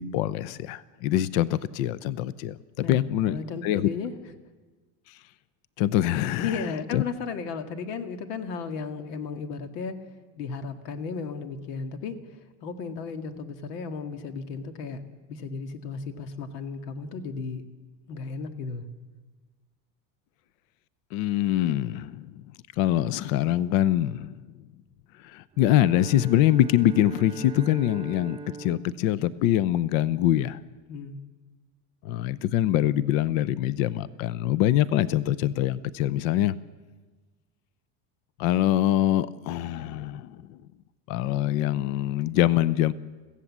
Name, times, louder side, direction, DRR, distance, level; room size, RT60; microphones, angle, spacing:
voice 1, 0.0-2.6 2.9-3.4 3.6-3.9 5.1-5.2 5.8-6.6 6.9-7.0 21.1-22.5 22.8-24.4 25.1-30.6 32.0-36.6 38.4-40.6 41.1-42.9, left 13 dB, 60° left, 18 dB, 0.7 m, -24 dB
voice 2, 2.8-4.1 6.4-10.0 10.4-15.0 15.3-17.6 18.1-18.9 30.9-31.2, left 5 dB, 90° left, 7 dB, 2.0 m, -34 dB
Bowed string instrument, 25.5-30.1, right 2 dB, 10° right, 0.7 m, -41 dB
24.5 x 16.0 x 7.4 m, 1.3 s
cardioid pair, 165°, 46 cm